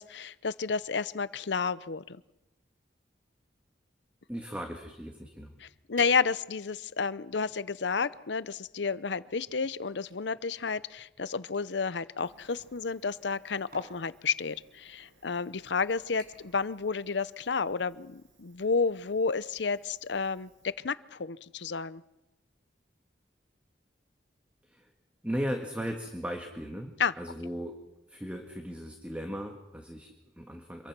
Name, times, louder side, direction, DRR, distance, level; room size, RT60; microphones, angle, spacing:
voice 1, 0.0-2.2 5.6-22.0 27.0-27.1, left 5 dB, 75° left, 16 dB, 0.7 m, -31 dB
voice 2, 4.3-5.5 24.6-24.9 25.2-27.8 28.1-30.9, equal, 5° right, 3 dB, 1.7 m, -37 dB
sound 1, 6.0-6.7 7.3-8.2 9.2-12.1 13.2-13.4 13.7-14.0 14.9-15.1 15.5-15.8 16.2-16.6 16.9-17.3 17.6-17.7, right 2 dB, 55° right, 6.8 m, -52 dB
Cricket, 12.2-20.7, right 2 dB, 85° right, 7.3 m, -64 dB
26.5 x 23.0 x 6.1 m, 0.95 s
head